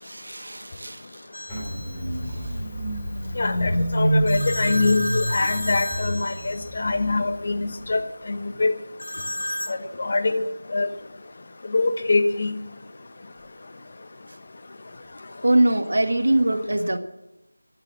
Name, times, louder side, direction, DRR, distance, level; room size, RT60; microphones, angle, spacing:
voice 1, 0.0-1.0 15.4-17.0, right 1 dB, 65° right, 8 dB, 1.6 m, -22 dB
sound 1, 1.3-2.1 4.3-6.9 9.0-9.8, equal, 90° left, 0.8 m, -32 dB
Engine starting, 1.5-8.0, right 1 dB, 10° left, 3.5 m, -28 dB
voice 2, 3.4-8.0 8.3-8.7 9.7-10.4 10.7-10.9 11.7-12.5, left 3 dB, 40° left, 8 dB, 1.3 m, -24 dB
14.5 x 10.5 x 7.6 m, 0.96 s
figure-of-eight pair, 170°, 0 cm